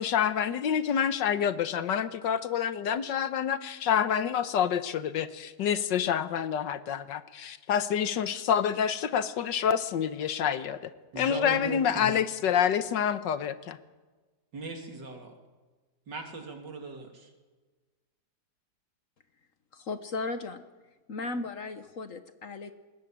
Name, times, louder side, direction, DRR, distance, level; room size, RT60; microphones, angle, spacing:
voice 1, 0.0-10.9 11.2-13.8, left 8 dB, 75° left, 12 dB, 1.6 m, -27 dB
voice 2, 11.1-12.1 14.5-15.3 16.1-17.3, right 3 dB, 70° right, 4 dB, 3.4 m, -39 dB
voice 3, 19.7-20.6 21.1-22.7, left 3 dB, 50° left, 10 dB, 1.4 m, -36 dB
20.5 x 18.0 x 8.7 m, 1.3 s
omnidirectional pair, 2.0 m